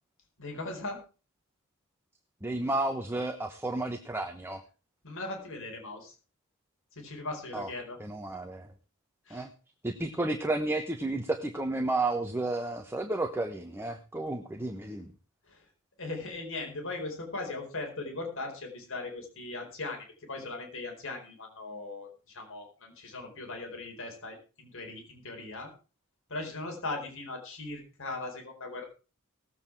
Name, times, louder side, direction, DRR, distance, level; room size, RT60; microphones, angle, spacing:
voice 1, 0.4-1.0 5.0-6.1 6.9-8.0 9.3-9.5 15.5-15.6 16.0-25.7 26.3-28.9, left 2 dB, 65° left, 2 dB, 4.6 m, -39 dB
voice 2, 2.4-4.6 7.5-7.7 8.0-8.7 9.3-9.5 9.8-15.1, right 2 dB, 10° right, 5 dB, 1.1 m, -32 dB
18.5 x 8.3 x 4.7 m, 0.34 s
head